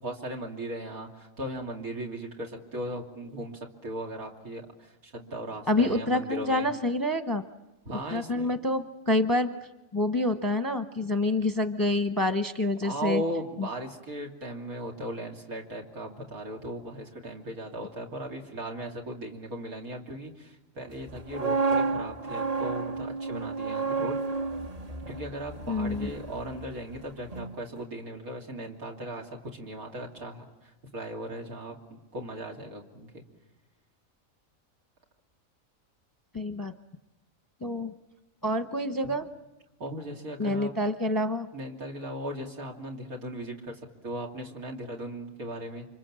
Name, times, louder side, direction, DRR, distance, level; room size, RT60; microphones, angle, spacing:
voice 1, 0.0-6.7 7.9-8.5 12.8-24.2 25.1-33.2 39.0-39.1 39.8-40.7 41.5-45.9, right 1 dB, 80° right, 1 dB, 3.5 m, -37 dB
voice 2, 5.7-7.4 8.1-9.5 9.9-13.2 25.7-26.1 36.3-36.7 37.6-37.9 38.4-39.3 40.4-41.5, left 1 dB, 20° left, 9 dB, 0.8 m, -27 dB
sound 1, 21.1-27.0 27.3-27.5, right 4 dB, 30° right, 1.1 m, -31 dB
29.5 x 25.5 x 7.5 m, 1.0 s
omnidirectional pair, 1.5 m